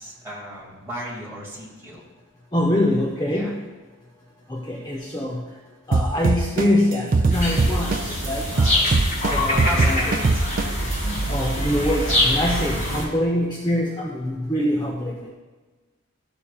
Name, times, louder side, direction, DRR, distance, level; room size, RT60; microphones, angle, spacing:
voice 1, 0.0-2.0 3.3-3.5 8.5-9.0 9.4-10.4, right 1 dB, 10° right, -6 dB, 2.3 m, -35 dB
voice 2, 2.5-3.5 4.5-5.4 5.9-7.9 8.3-8.4 9.3-10.1 11.3-15.3, left 1 dB, 20° left, -4 dB, 0.8 m, -24 dB
sound 1, 5.9-8.3 8.6-10.9, right 3 dB, 40° right, 0.4 m, -20 dB
sound 2, 7.3-13.0, left 1 dB, 35° left, 2.3 m, -24 dB
12.5 x 7.0 x 2.4 m, 1.3 s
head